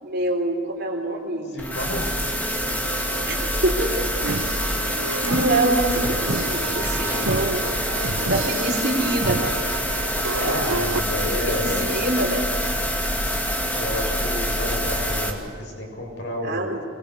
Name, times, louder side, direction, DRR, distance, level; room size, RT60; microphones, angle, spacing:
voice 1, 0.0-1.5 3.3-4.1 4.8-4.9 5.2-7.6 8.3-9.4 11.5-12.5 16.4-16.8, right 1 dB, 50° right, 1 dB, 4.0 m, -25 dB
voice 2, 1.5-2.1 10.3-12.0 13.8-16.7, left 1 dB, 55° left, 0 dB, 7.4 m, -30 dB
sound 1, 1.6-15.3, equal, 10° left, 2.7 m, -26 dB
sound 2, 4.2-11.0, right 3 dB, 85° right, 1.1 m, -30 dB
Tearing, 5.8-14.1, right 1 dB, 10° right, 4.9 m, -43 dB
26.0 x 22.5 x 8.3 m, 2.1 s
head